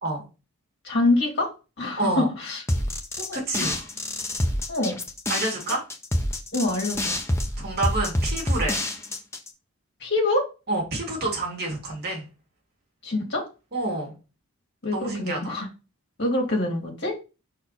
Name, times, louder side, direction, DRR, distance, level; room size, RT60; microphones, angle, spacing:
voice 1, 0.8-1.5 1.8-2.6 3.2-3.8 4.7-5.0 6.5-7.2 10.0-10.5 13.0-13.5 14.8-15.7 16.2-17.1, left 2 dB, 50° left, 0 dB, 2.5 m, -25 dB
voice 2, 1.9-2.3 3.3-3.8 5.3-5.8 7.6-8.8 10.7-12.3 13.7-14.1 14.9-15.6, right 2 dB, 45° right, -1 dB, 2.2 m, -28 dB
sound 1, 2.7-9.5, left 1 dB, 10° left, 0.7 m, -27 dB
5.7 x 4.3 x 4.1 m, 0.31 s
head